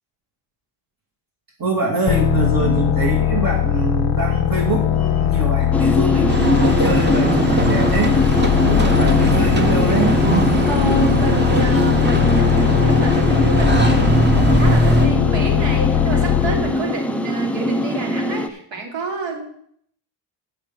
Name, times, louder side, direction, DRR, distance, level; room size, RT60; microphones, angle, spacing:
voice 1, 1.6-8.2 8.6-10.2, right 3 dB, 50° right, -1 dB, 2.3 m, -24 dB
sound 1, 2.1-16.8, left 11 dB, 55° left, 0.5 m, -20 dB
sound 2, 5.7-18.5, left 1 dB, 5° left, 0.5 m, -22 dB
sound 3, 6.3-15.1, right 2 dB, 25° right, 1.0 m, -20 dB
voice 2, 10.7-19.5, right 2 dB, 70° right, 1 dB, 2.9 m, -28 dB
7.6 x 6.6 x 7.4 m, 0.65 s
wide cardioid pair, 155°, 46 cm